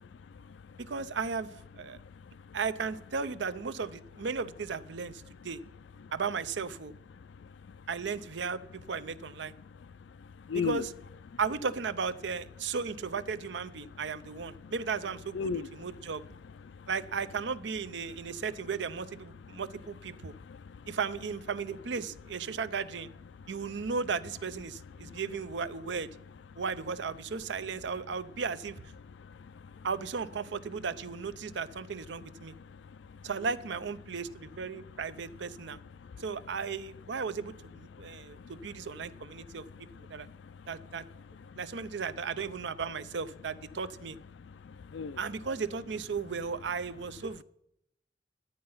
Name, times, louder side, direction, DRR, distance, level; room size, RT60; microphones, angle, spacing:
voice 1, 0.2-0.8 1.9-2.6 6.0-6.1 7.2-7.9 9.6-10.9 11.3-11.4 14.6-14.7 15.3-15.9 16.6-16.9 18.3-18.4 19.4-19.6 20.3-21.0 23.3-23.6 25.0-25.2 26.5-26.6 29.0-29.9 32.4-33.3 34.7-34.9 35.7-36.2 37.9-38.9 39.4-41.6 44.4-45.2, left 6 dB, 80° left, 0.4 m, -42 dB
voice 2, 0.8-1.5 1.8-2.0 2.5-5.6 6.1-6.9 7.9-9.5 10.5-10.9 11.4-16.2 16.9-20.3 20.9-23.1 23.5-26.1 26.6-28.8 29.8-32.5 33.2-35.8 36.2-39.7 40.0-40.3 40.7-41.0 41.6-44.2 45.2-47.4, right 5 dB, 75° right, 0.6 m, -35 dB
12.0 x 8.7 x 5.5 m
head